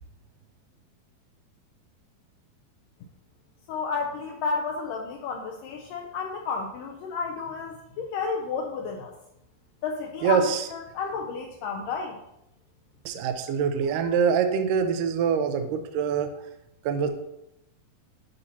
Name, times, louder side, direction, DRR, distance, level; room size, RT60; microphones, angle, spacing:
voice 1, 3.7-9.1 9.8-10.4 10.7-12.2, left 5 dB, 90° left, 2 dB, 1.9 m, -31 dB
voice 2, 10.2-10.7 13.1-16.3 16.8-17.1, right 6 dB, 90° right, 7 dB, 1.9 m, -24 dB
9.5 x 5.7 x 2.7 m, 0.82 s
omnidirectional pair, 4.5 m